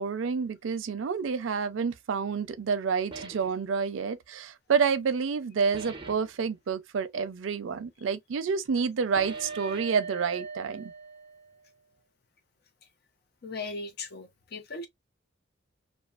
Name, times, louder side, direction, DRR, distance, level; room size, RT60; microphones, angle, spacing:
voice 1, 0.0-10.9, right 6 dB, 80° right, 0.4 m, -29 dB
sound 1, 3.1-3.6 5.7-6.3 9.2-11.6, right 4 dB, 25° right, 0.6 m, -40 dB
voice 2, 13.4-14.9, left 3 dB, 55° left, 0.6 m, -38 dB
2.5 x 2.3 x 2.3 m
head